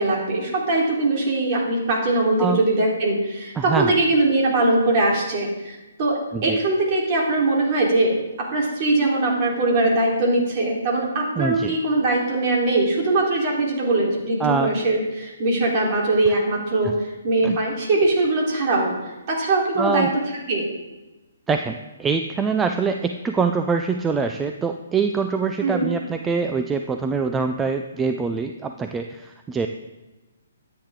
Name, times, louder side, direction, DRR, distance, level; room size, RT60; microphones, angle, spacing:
voice 1, 0.0-19.0 19.3-20.1 20.5-20.7 25.6-25.9, right 2 dB, 35° right, -3 dB, 3.8 m, -21 dB
voice 2, 3.6-3.9 6.3-6.6 11.4-11.7 14.4-14.7 16.8-16.9 17.4-17.6 19.8-20.1 21.5-29.7, right 5 dB, 10° right, 6 dB, 0.5 m, -24 dB
13.0 x 9.0 x 3.8 m, 1.1 s
hypercardioid pair, 145°, 0 cm